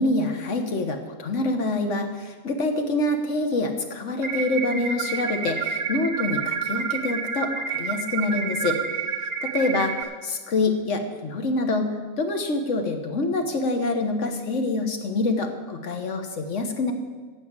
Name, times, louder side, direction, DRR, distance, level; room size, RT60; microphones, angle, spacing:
voice 1, 0.0-8.8 9.4-9.9 10.2-16.9, left 2 dB, 60° left, 5 dB, 1.6 m, -26 dB
sound 1, 4.2-10.0, right 6 dB, 65° right, 1.2 m, -29 dB
15.0 x 5.2 x 8.8 m, 1.5 s
omnidirectional pair, 1.5 m